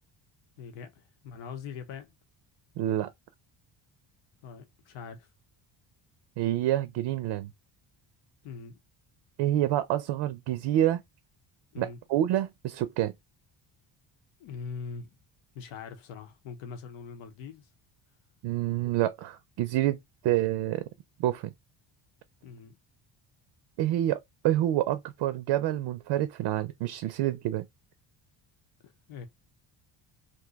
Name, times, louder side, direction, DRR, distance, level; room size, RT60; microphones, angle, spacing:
voice 1, 0.6-2.2 4.4-5.3 8.4-8.8 11.7-12.0 14.4-15.2 15.5-17.7 22.4-22.7 28.8-29.3, left 5 dB, 90° left, 0.8 m, -42 dB
voice 2, 2.8-3.1 6.4-7.5 9.4-11.0 11.8-13.1 18.4-20.0 20.2-20.8 21.2-21.5 23.8-27.7, right 13 dB, 70° right, 0.5 m, -27 dB
2.6 x 2.2 x 3.8 m
cardioid pair, 105°, 46 cm